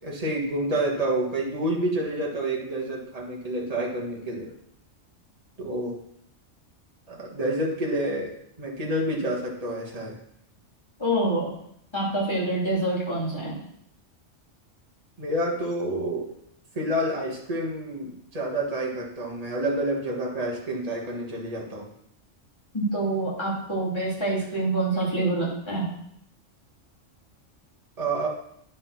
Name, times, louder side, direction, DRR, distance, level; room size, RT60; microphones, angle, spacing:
voice 1, 0.0-4.5 5.6-6.0 7.1-8.3 8.6-10.2 15.2-16.3 16.8-21.9 28.0-28.3, right 1 dB, 30° right, -3 dB, 1.8 m, -28 dB
voice 2, 11.0-11.5 11.9-13.6 22.7-25.9, right 2 dB, 20° left, -7 dB, 2.9 m, -26 dB
9.6 x 4.3 x 5.8 m, 0.72 s
omnidirectional pair, 1.3 m